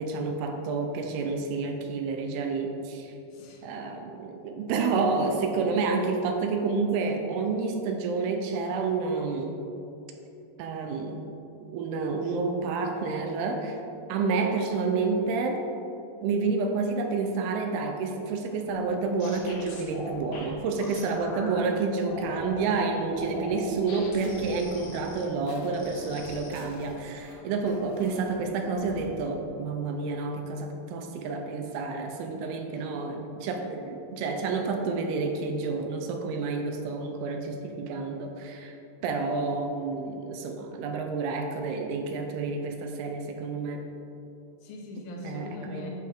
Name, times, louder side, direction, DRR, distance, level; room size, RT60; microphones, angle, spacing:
voice 1, 0.0-3.1 3.6-9.5 10.6-11.3 11.6-13.8 14.1-15.6 16.2-38.8 39.0-43.8 45.2-45.9, right 4 dB, 80° right, 4 dB, 2.5 m, -29 dB
voice 2, 3.3-3.7 32.5-32.9 39.0-39.3 44.6-45.9, left 2 dB, 85° left, 0 dB, 3.1 m, -42 dB
sound 1, 18.7-21.6 22.0-22.7 23.1-27.3 27.7-28.3 28.7-29.1, left 2 dB, 70° left, 2.9 m, -42 dB
10.5 x 5.5 x 3.5 m, 2.9 s
omnidirectional pair, 4.6 m